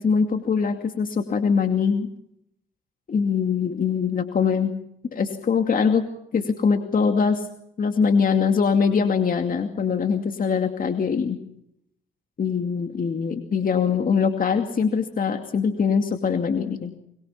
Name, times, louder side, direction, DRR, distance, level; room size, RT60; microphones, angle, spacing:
voice 1, 0.0-2.1 3.1-4.7 5.1-6.0 6.3-7.5 7.8-11.4 12.4-17.0, left 6 dB, 45° left, 5 dB, 2.5 m, -22 dB
23.5 x 22.5 x 5.9 m, 0.73 s
cardioid pair, 90°, 20 cm